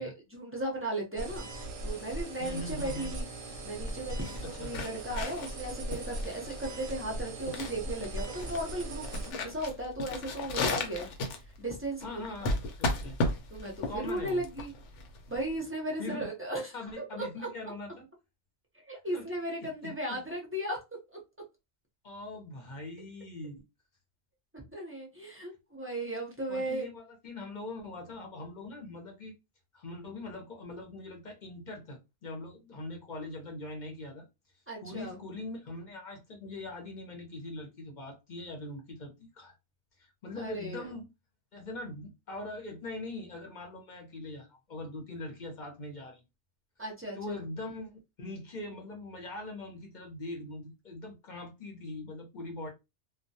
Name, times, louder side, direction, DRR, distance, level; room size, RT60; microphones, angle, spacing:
voice 1, 0.0-1.5 1.8-3.3 3.6-11.1 11.6-12.2 13.5-14.7 15.3-16.7 17.2-17.5 18.9-20.8 21.1-21.2 24.5-26.9 34.7-35.2 40.4-40.9 46.8-47.2, right 1 dB, 15° right, 0.4 m, -36 dB
sound 1, 1.2-9.3, right 1 dB, 55° right, 0.7 m, -39 dB
voice 2, 2.4-3.1 4.4-4.7 12.0-13.2 13.9-14.4 16.0-16.3 16.7-18.0 19.1-19.3 19.6-20.2 22.0-23.6 26.5-29.4 29.7-34.3 34.8-39.5 40.0-41.1 41.5-46.2 47.1-52.7, left 2 dB, 45° left, 0.7 m, -42 dB
sound 2, 3.9-15.5, left 2 dB, 80° left, 0.9 m, -35 dB
2.2 x 2.2 x 2.6 m
omnidirectional pair, 1.2 m